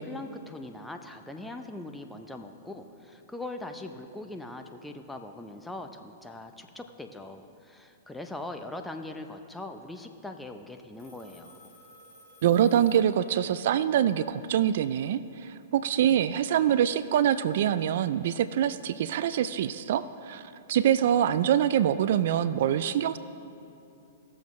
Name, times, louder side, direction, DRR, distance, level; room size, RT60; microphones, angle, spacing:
voice 1, 0.0-11.6, left 2 dB, 5° left, 5 dB, 0.6 m, -41 dB
Telephone, 10.9-13.7, left 1 dB, 30° left, 2.6 m, -55 dB
voice 2, 12.4-23.2, right 10 dB, 60° right, 14 dB, 0.3 m, -25 dB
18.0 x 7.0 x 3.2 m, 2.7 s
hypercardioid pair, 130°, 0 cm